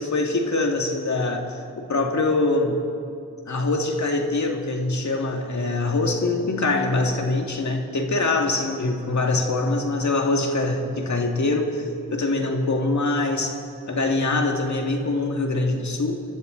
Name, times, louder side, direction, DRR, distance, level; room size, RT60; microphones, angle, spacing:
voice 1, 0.0-2.8 3.5-11.8 12.1-13.6 13.9-16.2, left 2 dB, 55° left, 2 dB, 2.2 m, -24 dB
25.5 x 12.5 x 4.0 m, 2.4 s
supercardioid pair, 45°, 35 cm